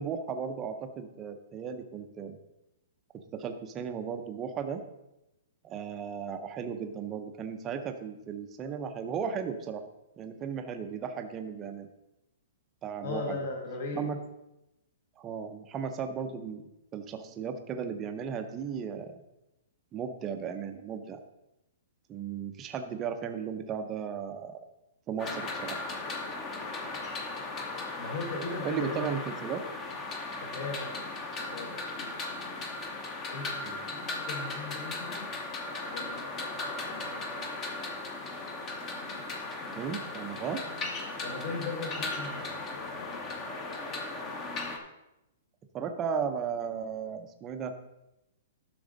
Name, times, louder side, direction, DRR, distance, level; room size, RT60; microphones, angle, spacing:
voice 1, 0.0-2.4 3.3-4.8 5.6-9.8 10.2-11.9 12.8-13.4 13.9-14.2 15.2-19.1 19.9-21.2 22.1-24.6 25.1-25.8 28.6-29.6 33.6-33.8 39.7-40.6 45.7-47.7, right 7 dB, 15° right, 6 dB, 0.6 m, -35 dB
voice 2, 13.0-14.0 28.0-29.1 30.4-31.0 31.5-31.8 33.3-35.3 35.9-36.5 36.9-37.4 41.2-42.4 42.8-43.2, left 3 dB, 45° left, 1 dB, 1.2 m, -38 dB
sound 1, 25.2-44.8, left 2 dB, 15° left, 0.8 m, -37 dB
11.5 x 6.1 x 3.9 m, 0.91 s
hypercardioid pair, 180°, 0 cm